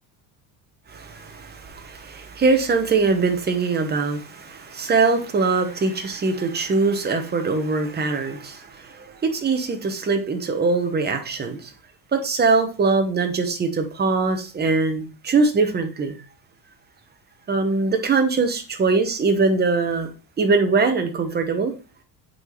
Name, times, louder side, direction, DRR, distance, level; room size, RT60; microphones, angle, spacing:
voice 1, 0.9-11.7 12.1-16.2 17.5-20.1 20.4-21.7, right 4 dB, 20° right, 1.0 m, -22 dB
8.7 x 4.1 x 3.2 m
cardioid pair, 145°, 43 cm